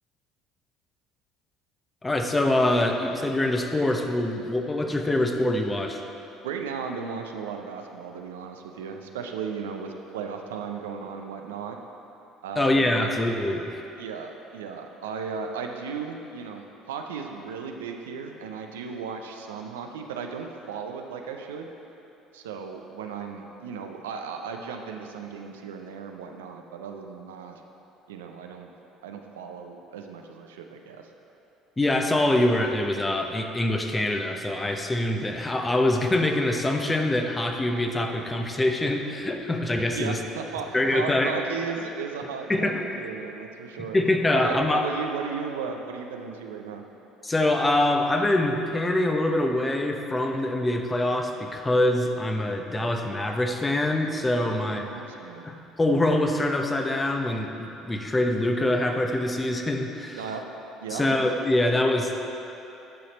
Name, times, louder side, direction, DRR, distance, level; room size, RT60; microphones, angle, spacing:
voice 1, 2.0-6.0 12.6-13.8 31.8-40.2 40.7-41.3 42.5-42.9 43.9-44.8 47.2-54.8 55.4-60.2 60.9-62.3, left 1 dB, 20° left, 4 dB, 0.8 m, -24 dB
voice 2, 6.4-11.8 12.4-13.1 14.0-16.6 16.9-21.7 22.3-27.6 28.1-28.7 29.0-31.1 39.9-44.0 44.3-46.8 54.5-55.4 60.2-60.5 60.8-61.0, right 6 dB, 80° right, 4 dB, 0.5 m, -35 dB
10.0 x 5.8 x 4.1 m, 2.9 s
hypercardioid pair, 60°, 0 cm